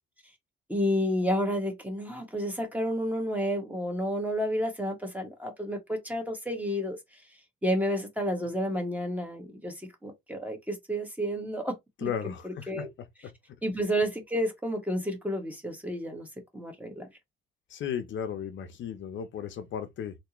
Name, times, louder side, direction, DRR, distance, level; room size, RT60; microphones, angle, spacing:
voice 1, 0.7-7.2 7.6-12.1 12.4-12.9 13.6-16.3 16.5-17.1, equal, 10° right, 1.6 m, -31 dB
voice 2, 12.0-12.9 13.2-13.3 17.7-20.2, left 8 dB, 70° left, 0.8 m, -35 dB
3.4 x 2.9 x 3.0 m
cardioid pair, 90°, 20 cm